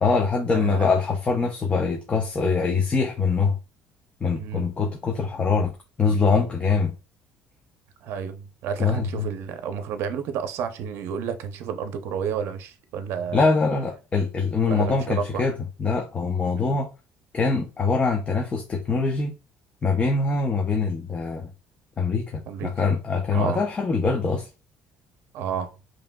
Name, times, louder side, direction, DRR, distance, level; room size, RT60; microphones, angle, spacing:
voice 1, 0.0-3.5 4.2-5.7 6.0-6.9 8.8-9.3 13.3-16.9 17.3-19.3 19.8-21.5 22.0-24.5, left 4 dB, 30° left, 0.7 m, -23 dB
voice 2, 0.5-1.0 4.4-4.7 8.0-13.4 14.7-15.4 16.6-16.8 22.5-22.7 23.3-23.6 25.3-25.8, right 7 dB, 70° right, 0.6 m, -31 dB
5.0 x 3.0 x 2.2 m
cardioid pair, 115°, 4 cm